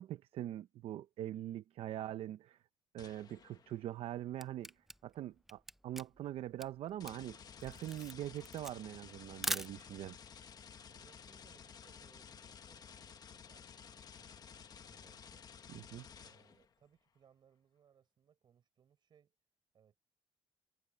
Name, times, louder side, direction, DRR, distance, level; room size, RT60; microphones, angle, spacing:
voice 1, 0.0-2.6 2.9-4.7 5.0-10.2 15.7-16.1, right 12 dB, 70° right, 0.6 m, -43 dB
sound 1, 3.0-3.9 7.0-16.7, left 7 dB, 40° left, 1.3 m, -54 dB
Camera, 4.0-10.2, right 1 dB, 5° right, 0.5 m, -43 dB
voice 2, 10.9-15.5 16.2-19.3 19.7-20.0, right 8 dB, 45° right, 4.8 m, -69 dB
cardioid pair, 150°, 10 cm